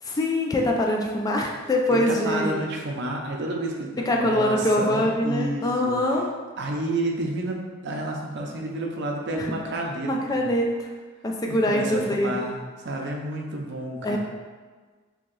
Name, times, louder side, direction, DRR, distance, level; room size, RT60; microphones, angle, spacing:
voice 1, 0.0-2.6 4.1-6.3 9.4-9.5 10.1-10.7 11.2-12.4 14.0-14.2, left 1 dB, 20° left, 0 dB, 0.3 m, -24 dB
voice 2, 1.9-6.0 6.6-10.5 11.5-12.6 12.8-14.2, right 1 dB, 60° right, 0 dB, 0.5 m, -30 dB
2.9 x 2.7 x 3.8 m, 1.4 s
head